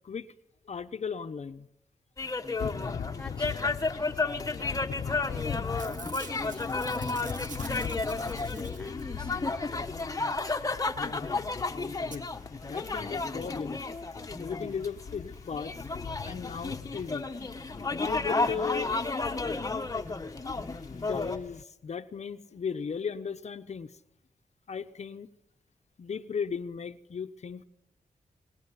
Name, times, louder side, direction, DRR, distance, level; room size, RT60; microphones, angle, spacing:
voice 1, 0.7-1.7 3.4-3.5 11.0-11.5 12.0-12.3 12.7-13.8 14.4-15.8 16.3-17.3 17.9-18.9 19.9-20.1 20.9-23.9 24.7-25.3 26.0-27.6, left 6 dB, 60° left, 8 dB, 1.1 m, -36 dB
sound 1, 2.2-21.4, left 3 dB, 25° left, 1.3 m, -33 dB
Thunder / Rain, 2.6-21.6, left 7 dB, 85° left, 1.0 m, -42 dB
voice 2, 3.1-4.2 4.5-9.6 18.5-18.7, left 1 dB, 5° left, 4 dB, 1.4 m, -44 dB
Packing tape duct tape / Tearing, 5.1-5.4 5.6-9.2 11.1-11.2 11.4-11.5 12.1-12.2 12.8-12.9 13.2-13.3, right 5 dB, 90° right, 2.1 m, -47 dB
24.0 x 19.5 x 9.8 m, 0.83 s
wide cardioid pair, 140°, 13 cm